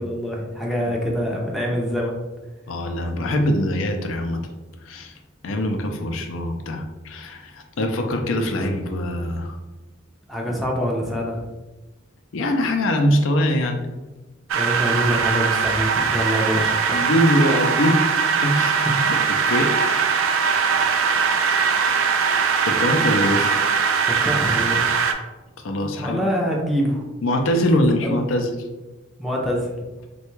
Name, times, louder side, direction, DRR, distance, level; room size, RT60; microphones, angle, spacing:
voice 1, 0.0-2.1 6.0-6.1 10.3-11.5 14.5-17.0 24.2-24.9 25.8-27.0 28.0-28.2 29.2-29.7, equal, ahead, -2 dB, 0.4 m, -25 dB
voice 2, 2.7-4.4 4.8-5.1 5.4-9.6 12.3-13.8 16.4-16.5 16.9-18.0 18.4-18.7 19.5-20.1 22.7-23.6 25.6-26.2 27.2-28.5, left 1 dB, 80° left, 4 dB, 0.4 m, -22 dB
sound 1, 14.5-25.1, right 6 dB, 90° right, 0.4 m, -21 dB
3.2 x 2.2 x 3.0 m, 1.1 s
head